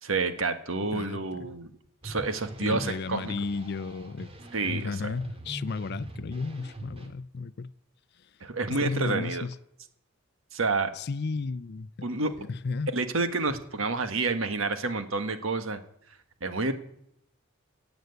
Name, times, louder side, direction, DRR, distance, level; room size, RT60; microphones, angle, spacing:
voice 1, 0.0-1.7 2.0-3.3 4.5-5.2 8.4-9.4 10.5-10.9 12.0-12.3 12.9-15.8 16.4-16.7, right 3 dB, 70° right, 1.5 m, -29 dB
voice 2, 0.9-1.5 2.6-4.3 4.6-7.7 8.7-9.6 10.9-12.9, left 4 dB, 50° left, 0.5 m, -33 dB
sound 1, 2.0-7.1, right 1 dB, 30° right, 2.1 m, -42 dB
17.5 x 7.9 x 8.1 m
head